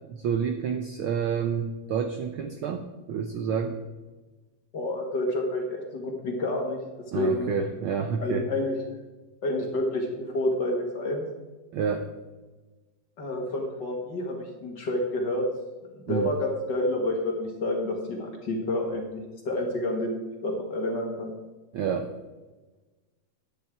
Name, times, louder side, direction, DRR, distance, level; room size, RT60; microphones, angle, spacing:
voice 1, 0.1-2.8 3.1-3.8 7.1-8.4 11.7-12.1 16.1-16.3 21.7-22.1, right 6 dB, 85° right, 6 dB, 1.1 m, -29 dB
voice 2, 4.7-6.8 7.1-7.5 8.2-8.8 9.4-11.2 13.2-15.5 16.1-21.3, left 1 dB, 40° left, 1 dB, 2.1 m, -29 dB
12.0 x 9.4 x 4.7 m, 1.2 s
omnidirectional pair, 3.3 m